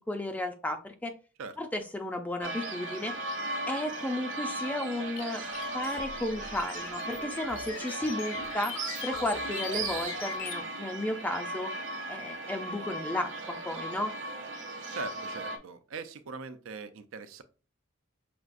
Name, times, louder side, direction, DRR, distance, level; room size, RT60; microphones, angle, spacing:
voice 1, 0.1-1.1 1.6-3.1 3.7-5.4 5.7-8.7 9.0-11.7 12.1-14.1, left 1 dB, 10° left, 5 dB, 0.4 m, -33 dB
sound 1, 2.4-15.6, right 2 dB, 60° right, 0.9 m, -37 dB
sound 2, 5.2-10.6, left 7 dB, 70° left, 0.5 m, -42 dB
voice 2, 14.9-17.4, right 4 dB, 75° right, 9 dB, 0.5 m, -41 dB
5.9 x 2.4 x 2.5 m, 0.33 s
head